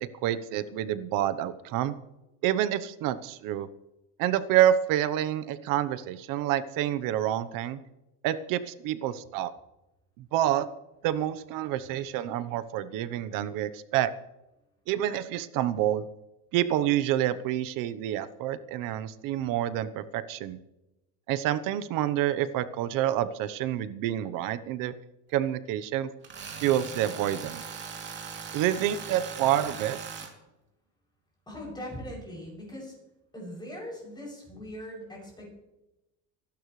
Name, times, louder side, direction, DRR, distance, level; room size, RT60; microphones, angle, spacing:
voice 1, 0.2-1.9 2.4-3.7 4.2-7.8 8.2-9.5 10.2-10.7 11.0-14.1 14.9-16.1 16.5-20.6 21.3-24.9 25.3-26.1 26.6-27.6 28.5-30.0, right 12 dB, 60° right, 13 dB, 1.0 m, -28 dB
Tools, 26.2-30.3, right 6 dB, 30° right, 2.8 m, -40 dB
voice 2, 31.5-33.0 33.3-35.5, equal, 10° left, -3 dB, 7.3 m, -40 dB
25.0 x 12.0 x 3.3 m, 0.93 s
cardioid pair, 155°, 36 cm